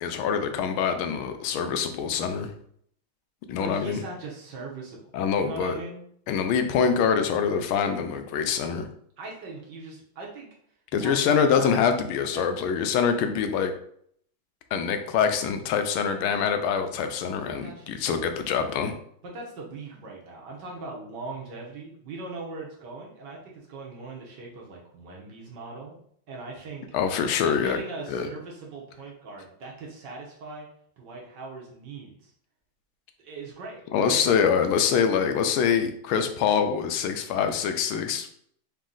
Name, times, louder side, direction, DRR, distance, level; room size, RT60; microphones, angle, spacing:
voice 1, 0.0-2.5 3.5-4.0 5.1-5.7 6.3-8.9 10.9-13.7 14.7-18.9 26.9-27.8 28.1-28.3 33.9-38.3, left 7 dB, 85° left, 7 dB, 1.4 m, -25 dB
voice 2, 3.6-5.0 5.4-6.0 9.2-10.5 10.9-11.8 12.3-12.5 17.5-18.0 19.2-26.0 26.3-27.0 27.4-30.7 31.0-32.3 33.2-34.2, right 3 dB, 60° right, -2 dB, 1.4 m, -40 dB
4.1 x 2.8 x 3.7 m, 0.66 s
omnidirectional pair, 2.3 m